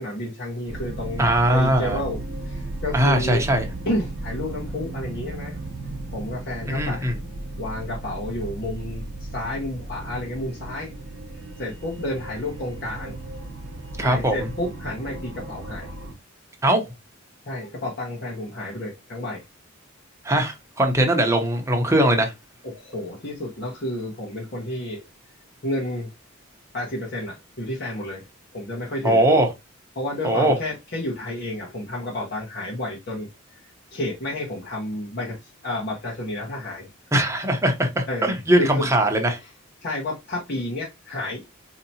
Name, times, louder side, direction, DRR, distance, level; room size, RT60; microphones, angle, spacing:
voice 1, 0.0-3.4 3.8-5.6 6.1-7.1 7.6-10.9 11.6-13.2 14.0-15.9 17.4-19.4 22.6-25.1 25.6-26.1 26.7-28.3 28.5-29.3 29.9-33.6 33.9-36.9 38.1-38.9 39.4-39.5 39.8-41.5, left 1 dB, 50° left, 1.0 m, -31 dB
sound 1, 0.7-16.1, right 2 dB, 70° right, 0.9 m, -35 dB
voice 2, 1.2-2.0 2.9-3.7 6.7-7.2 14.0-14.5 16.6-16.8 20.2-22.3 29.0-29.5 30.2-30.5 37.1-39.4, right 1 dB, 15° right, 0.8 m, -20 dB
4.4 x 2.8 x 2.7 m
head